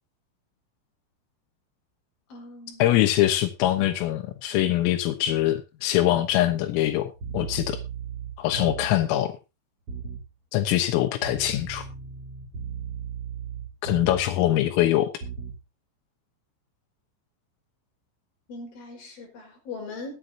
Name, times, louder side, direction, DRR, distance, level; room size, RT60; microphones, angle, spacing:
voice 1, 2.3-2.8 18.5-20.2, left 3 dB, 45° left, 6.5 m, -40 dB
voice 2, 2.8-7.8 8.4-9.3 10.5-11.9 13.8-15.1, left 13 dB, 90° left, 3.9 m, -23 dB
sound 1, 7.1-9.0 9.9-10.3 11.2-14.4 15.2-15.6, right 6 dB, 45° right, 2.3 m, -36 dB
22.0 x 8.6 x 2.8 m
omnidirectional pair, 5.9 m